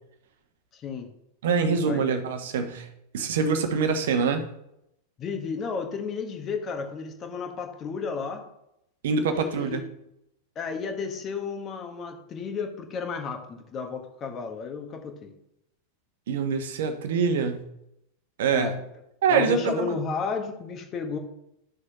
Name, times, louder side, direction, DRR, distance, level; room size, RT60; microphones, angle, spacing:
voice 1, 0.7-1.1 1.6-2.0 5.2-8.5 9.3-9.9 10.5-15.3 18.5-18.8 19.3-21.2, left 5 dB, 30° left, 4 dB, 1.3 m, -33 dB
voice 2, 1.4-2.9 3.1-4.5 9.0-9.8 16.3-17.6 18.4-18.7 19.2-20.0, right 5 dB, 60° right, 7 dB, 1.1 m, -25 dB
11.5 x 6.4 x 3.0 m, 0.81 s
figure-of-eight pair, 90°, 0 cm